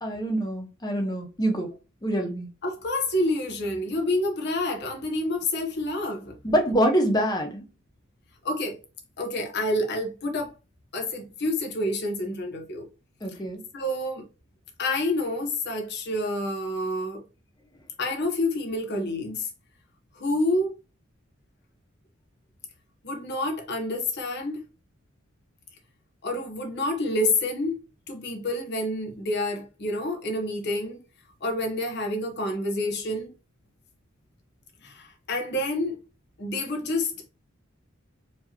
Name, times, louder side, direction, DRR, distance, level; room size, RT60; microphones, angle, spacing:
voice 1, 0.0-1.7 2.0-2.5 6.4-7.6 13.2-13.6, right 1 dB, 20° left, 0.8 m, -25 dB
voice 2, 2.6-6.4 8.4-8.8 9.2-10.5 10.9-12.9 13.7-14.3 14.8-17.2 18.0-19.5 20.2-20.7 23.0-24.6 26.2-27.8 28.1-31.0 31.4-33.3 34.8-36.0 36.4-37.1, left 1 dB, 55° left, 1.0 m, -28 dB
4.4 x 3.0 x 2.9 m
head